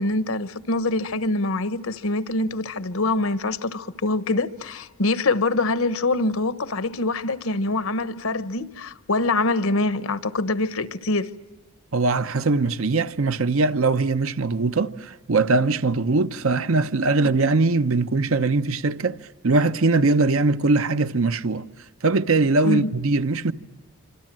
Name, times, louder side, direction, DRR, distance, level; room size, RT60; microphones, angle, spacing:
voice 1, 0.0-11.3 22.6-22.9, left 2 dB, 75° left, 1.1 m, -24 dB
voice 2, 11.9-19.2 19.4-21.7 22.0-23.5, right 3 dB, 70° right, 0.8 m, -21 dB
27.0 x 26.0 x 7.6 m
head